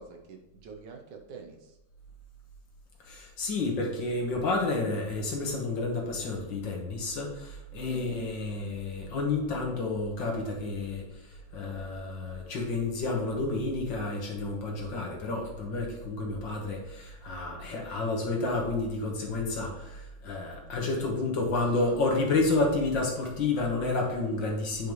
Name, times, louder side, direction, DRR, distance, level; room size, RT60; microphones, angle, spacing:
voice 1, 0.0-1.8 7.9-8.3 20.7-21.3 21.7-22.0, right 5 dB, 65° right, 3 dB, 1.4 m, -45 dB
voice 2, 3.0-24.9, left 3 dB, 70° left, 0 dB, 2.1 m, -30 dB
9.1 x 5.3 x 3.2 m, 0.94 s
omnidirectional pair, 2.1 m